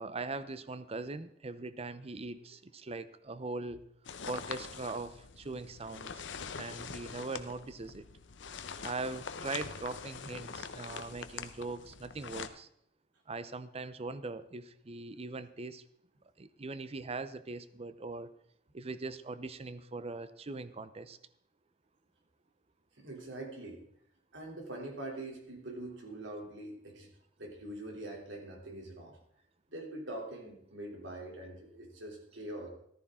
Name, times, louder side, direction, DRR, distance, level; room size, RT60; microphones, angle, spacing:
voice 1, 0.0-3.8 4.2-6.3 6.6-8.1 8.8-12.7 13.3-15.8 16.4-18.3 18.7-21.2, right 3 dB, 35° right, 14 dB, 0.7 m, -41 dB
sound 1, 4.0-12.5, left 6 dB, 75° left, 0.8 m, -44 dB
voice 2, 6.5-6.9 8.4-8.7 23.0-23.8 24.3-27.1 27.4-29.2 29.7-32.7, right 1 dB, 85° right, 1 dB, 3.1 m, -44 dB
14.0 x 13.5 x 3.7 m, 0.71 s
head